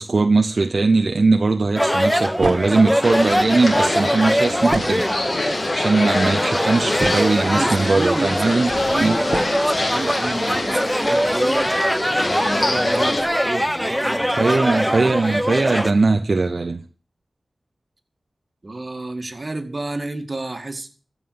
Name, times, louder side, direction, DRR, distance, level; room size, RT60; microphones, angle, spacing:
voice 1, 0.0-5.0 5.3-8.7 9.0-9.2 14.4-16.8, right 3 dB, 65° right, 0.8 m, -19 dB
sound 1, 1.8-15.9, equal, ahead, 0.9 m, -22 dB
sound 2, 2.4-2.9 4.7-5.4 6.2-6.3 6.7-7.5 8.4-8.5 9.3-9.6, right 3 dB, 80° right, 1.8 m, -29 dB
sound 3, 3.0-13.2, left 2 dB, 50° left, 2.2 m, -26 dB
voice 2, 7.4-15.2 18.6-20.9, right 2 dB, 40° right, 2.1 m, -31 dB
14.5 x 5.7 x 9.3 m
wide cardioid pair, 70°, 0 cm